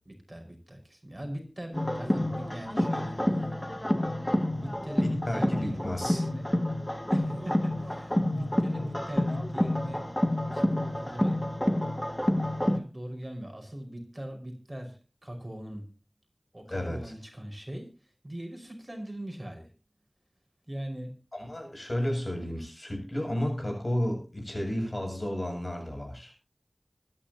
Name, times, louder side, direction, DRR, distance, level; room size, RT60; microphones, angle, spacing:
voice 1, 0.1-3.9 4.5-6.4 7.1-10.0 10.5-11.4 12.6-15.9 16.5-17.9 18.2-19.7 20.7-21.2, right 1 dB, 30° right, 3 dB, 5.5 m, -40 dB
sound 1, 1.7-12.8, left 1 dB, 20° left, 2.1 m, -28 dB
voice 2, 5.0-6.2 16.7-17.1 21.3-26.3, left 1 dB, 55° left, 2 dB, 7.7 m, -32 dB
25.0 x 11.0 x 2.9 m, 0.33 s
wide cardioid pair, 45°, 0 cm